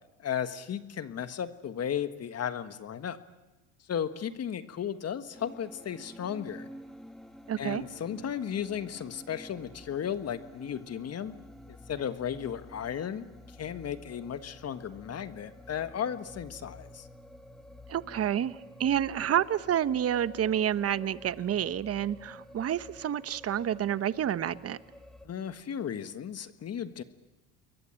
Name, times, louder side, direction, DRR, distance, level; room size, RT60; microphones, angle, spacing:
voice 1, 0.2-3.2 3.9-6.7 7.6-11.3 11.9-17.1 25.2-27.0, left 8 dB, 40° left, 11 dB, 1.5 m, -35 dB
sound 1, 5.3-25.3, left 1 dB, ahead, 2.6 m, -50 dB
voice 2, 7.5-7.8 17.9-24.8, right 10 dB, 35° right, 15 dB, 1.1 m, -29 dB
28.0 x 22.5 x 9.0 m, 1.1 s
supercardioid pair, 85°, 40 cm